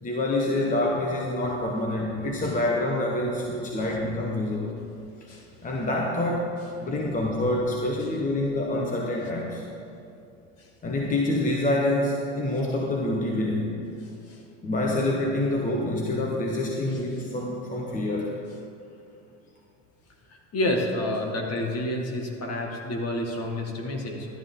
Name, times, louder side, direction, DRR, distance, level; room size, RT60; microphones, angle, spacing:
voice 1, 0.0-4.8 5.2-5.3 5.6-6.5 6.8-9.6 10.8-13.7 14.6-18.3, left 1 dB, 20° left, -1 dB, 1.2 m, -26 dB
voice 2, 20.5-24.3, left 1 dB, 40° left, 1 dB, 2.0 m, -29 dB
12.0 x 11.0 x 3.8 m, 2.6 s
supercardioid pair, 105°, 37 cm